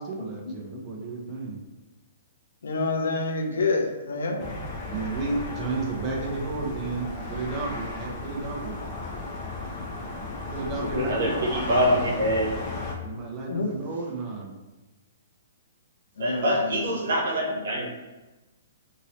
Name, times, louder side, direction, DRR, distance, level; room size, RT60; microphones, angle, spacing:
voice 1, 0.0-1.6 4.9-8.8 10.5-11.4 13.0-14.5, right 3 dB, 20° right, -2 dB, 0.6 m, -32 dB
voice 2, 2.6-4.6 10.8-11.1 13.5-13.7 16.2-16.7, left 3 dB, 85° left, 3 dB, 0.6 m, -28 dB
sound 1, 4.4-12.9, left 2 dB, 30° left, 0.6 m, -35 dB
voice 3, 10.9-12.6 16.2-17.9, equal, 70° right, -2 dB, 1.0 m, -25 dB
2.7 x 2.7 x 3.0 m, 1.1 s
hypercardioid pair, 160°, 0 cm